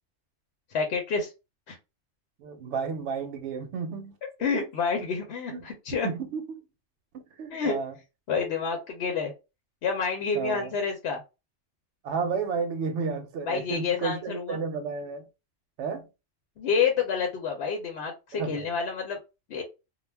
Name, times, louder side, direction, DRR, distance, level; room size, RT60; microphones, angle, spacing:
voice 1, 0.7-1.3 1.7-1.8 4.4-6.1 7.5-7.8 8.3-9.3 9.8-11.2 13.5-14.6 16.6-19.2 19.5-19.6, left 5 dB, 65° left, 0.8 m, -28 dB
voice 2, 2.4-4.1 4.5-4.7 5.5-5.6 6.0-6.6 7.1-8.0 10.3-10.7 12.0-15.2 15.8-16.1 18.3-18.7, right 5 dB, 70° right, 0.9 m, -32 dB
2.3 x 2.0 x 3.3 m
omnidirectional pair, 1.3 m